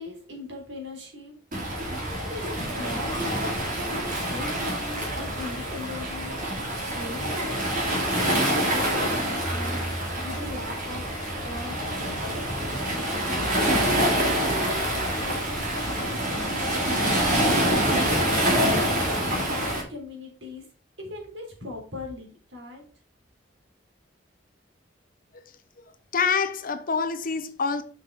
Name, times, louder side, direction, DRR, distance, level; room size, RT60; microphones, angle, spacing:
voice 1, 0.0-1.4 1.8-6.4 6.9-8.6 8.9-9.8 10.1-11.1 11.4-12.5 13.3-16.2 17.3-20.6 21.0-22.8, left 1 dB, 90° right, 3.5 m, -39 dB
Waves surf, 1.5-19.8, equal, 50° right, 2.4 m, -26 dB
voice 2, 25.8-27.8, left 5 dB, 50° left, 0.8 m, -27 dB
6.2 x 5.6 x 4.6 m
head